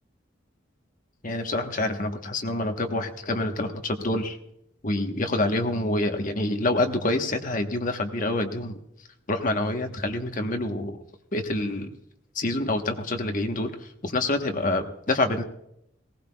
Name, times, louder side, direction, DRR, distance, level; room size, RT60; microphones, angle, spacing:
voice 1, 1.2-4.4 4.8-8.8 9.3-11.0 11.3-11.9 12.3-15.4, left 2 dB, 45° left, 5 dB, 1.1 m, -27 dB
19.0 x 17.5 x 2.3 m, 0.78 s
head